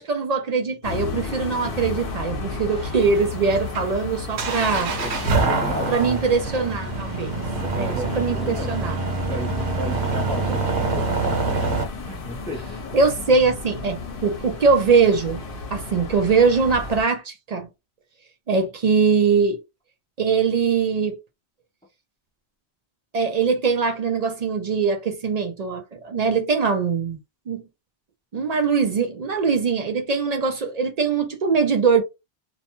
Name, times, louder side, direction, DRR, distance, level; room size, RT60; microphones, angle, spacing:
voice 1, 0.0-4.9 5.8-7.4 7.7-9.0 12.9-15.4 15.7-17.7 18.5-19.6 20.2-21.2 23.1-27.2 27.5-27.6 28.3-32.0, right 5 dB, 55° right, 0.4 m, -22 dB
sound 1, 0.8-17.0, left 3 dB, 60° left, 0.8 m, -33 dB
sound 2, 2.7-11.8, right 3 dB, 85° right, 0.9 m, -26 dB
voice 2, 4.5-5.9 7.5-8.7 9.3-11.4 12.1-12.6, equal, 10° left, 0.4 m, -34 dB
2.4 x 2.1 x 2.9 m
omnidirectional pair, 1.1 m